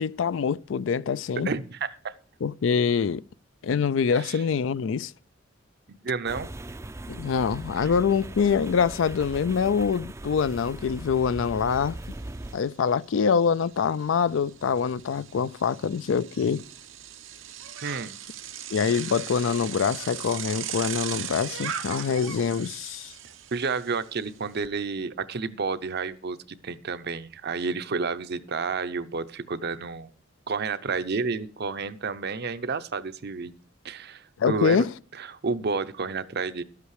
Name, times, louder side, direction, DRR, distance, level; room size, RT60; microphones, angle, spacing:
voice 1, 0.0-1.5 2.4-3.2 3.6-5.1 7.1-12.0 12.5-16.6 18.7-23.1 34.4-34.9, left 6 dB, 75° left, 0.4 m, -25 dB
voice 2, 1.5-2.1 4.1-4.4 5.9-6.5 7.8-7.9 17.8-18.2 23.2-30.1 30.5-33.5 33.8-34.8 35.2-36.6, right 4 dB, 55° right, 0.7 m, -31 dB
sound 1, 6.3-12.6, right 1 dB, 15° right, 0.4 m, -39 dB
Bicycle, 10.4-10.5 10.9-24.7, right 9 dB, 90° right, 0.9 m, -39 dB
12.0 x 8.3 x 4.8 m
head